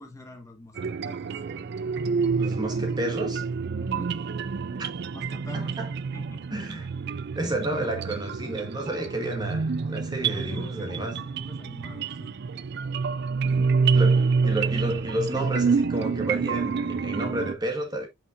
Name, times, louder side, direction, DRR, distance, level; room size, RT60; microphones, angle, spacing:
voice 1, 0.0-1.3 3.7-4.1 5.1-5.8 6.1-6.6 9.2-9.3 10.2-12.3 13.4-13.8, left 1 dB, 15° left, 1.5 m, -44 dB
sound 1, 0.8-17.5, right 5 dB, 50° right, 0.4 m, -27 dB
voice 2, 2.4-3.4 5.5-5.9 6.5-6.9 7.3-11.2 13.9-18.1, right 1 dB, 20° right, 1.5 m, -31 dB
8.4 x 5.6 x 2.5 m
head